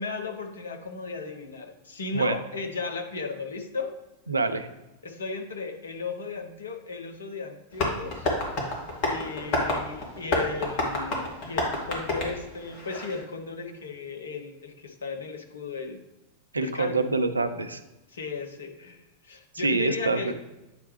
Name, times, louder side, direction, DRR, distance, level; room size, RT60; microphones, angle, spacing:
voice 1, 0.0-3.9 5.0-8.3 9.0-16.0 16.6-17.1 18.1-20.3, left 4 dB, 70° left, 4 dB, 0.9 m, -35 dB
voice 2, 4.3-4.7 16.5-17.8 19.6-20.3, right 3 dB, 80° right, 10 dB, 0.5 m, -26 dB
Tap, 7.7-13.2, left 2 dB, 40° left, 2.0 m, -29 dB
8.8 x 4.6 x 3.1 m, 1.0 s
figure-of-eight pair, 90°, 0 cm